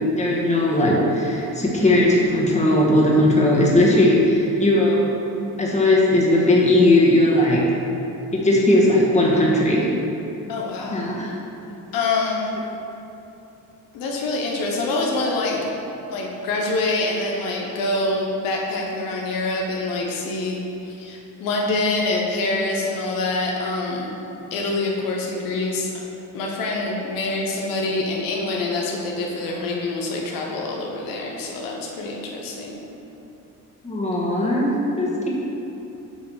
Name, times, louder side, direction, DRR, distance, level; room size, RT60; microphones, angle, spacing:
voice 1, 0.1-5.0 5.6-7.6 8.3-9.8 10.9-11.3 33.8-35.3, left 1 dB, 20° left, -3 dB, 1.5 m, -18 dB
voice 2, 10.5-11.0 11.9-12.5 13.9-15.6 16.1-24.1 24.5-25.9 26.3-32.8, left 2 dB, 90° left, -1 dB, 1.0 m, -25 dB
8.4 x 3.2 x 6.2 m, 2.9 s
cardioid pair, 90°, 33 cm